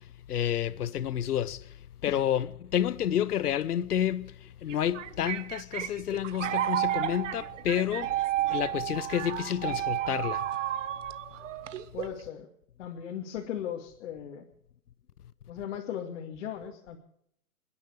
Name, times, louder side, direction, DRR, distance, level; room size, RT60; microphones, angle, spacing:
voice 1, 0.3-1.7 2.0-8.1 8.5-10.4, left 10 dB, 85° left, 1.0 m, -29 dB
sound 1, 4.7-12.2, right 13 dB, 55° right, 0.9 m, -32 dB
voice 2, 11.9-12.5 12.8-14.5 15.5-17.0, left 9 dB, 55° left, 2.5 m, -37 dB
28.5 x 10.5 x 4.8 m
hypercardioid pair, 150°, 45 cm